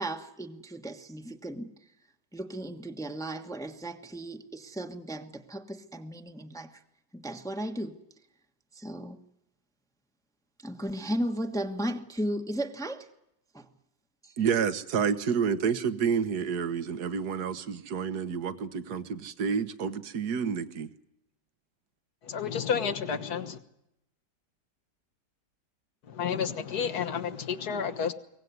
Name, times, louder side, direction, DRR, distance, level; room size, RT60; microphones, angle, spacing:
voice 1, 0.0-1.7 2.3-6.8 7.1-8.0 8.7-9.2 10.6-13.1 13.5-13.7 14.2-14.4, right 1 dB, ahead, 1.1 m, -35 dB
voice 2, 14.4-20.9, right 6 dB, 65° right, 1.7 m, -29 dB
voice 3, 22.2-23.6 26.1-28.1, left 7 dB, 65° left, 1.9 m, -31 dB
23.5 x 18.5 x 9.5 m
omnidirectional pair, 1.9 m